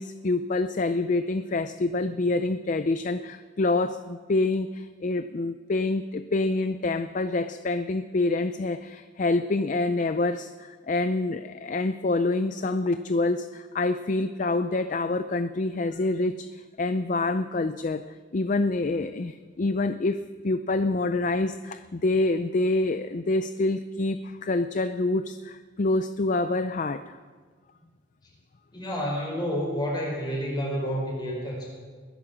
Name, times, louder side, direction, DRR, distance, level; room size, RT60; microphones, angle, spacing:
voice 1, 0.0-16.5 16.8-18.0 18.3-27.0, left 2 dB, 40° left, 11 dB, 0.4 m, -26 dB
voice 2, 28.7-31.7, equal, 20° left, -2 dB, 5.2 m, -29 dB
20.5 x 11.0 x 6.2 m, 1.5 s
head